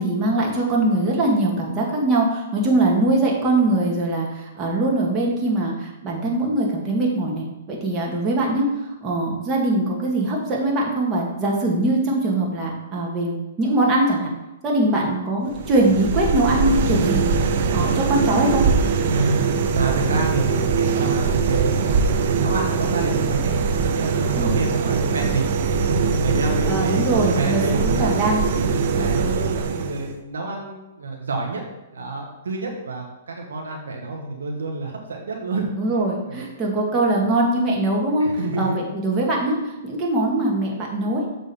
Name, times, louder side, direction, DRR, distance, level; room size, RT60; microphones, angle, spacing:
voice 1, 0.0-8.7 9.0-14.3 14.6-17.3 17.7-18.6 24.4-24.6 26.7-28.4 35.8-38.3 38.6-41.2, right 2 dB, 25° right, -2 dB, 2.0 m, -22 dB
sound 1, 15.5-30.2, right 5 dB, 55° right, 0.7 m, -22 dB
voice 2, 19.1-23.5 23.8-27.0 27.3-28.3 28.6-31.6 31.9-35.7 36.2-36.5 38.2-38.7, right 3 dB, 85° right, 1 dB, 1.3 m, -28 dB
7.3 x 3.7 x 5.6 m, 0.98 s
hypercardioid pair, 130°, 0 cm